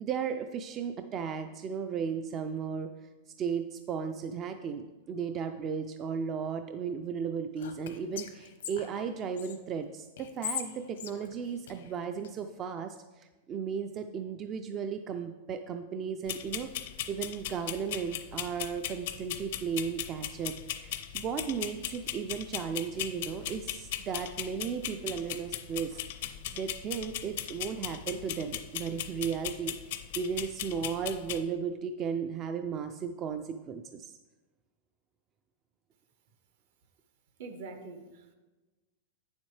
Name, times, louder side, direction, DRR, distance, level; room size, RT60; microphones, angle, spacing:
voice 1, 0.0-2.9 3.4-16.7 17.1-20.5 20.8-26.0 26.5-29.8 30.2-34.1, right 6 dB, 30° right, 8 dB, 0.3 m, -35 dB
Whispering, 7.6-9.6 10.2-12.3, left 8 dB, 85° left, 0.8 m, -41 dB
sound 1, 16.3-31.4, left 12 dB, 60° left, 0.5 m, -38 dB
voice 2, 37.4-38.3, right 3 dB, 65° right, 7 dB, 1.0 m, -44 dB
8.8 x 7.2 x 3.2 m, 1.2 s
supercardioid pair, 155°, 0 cm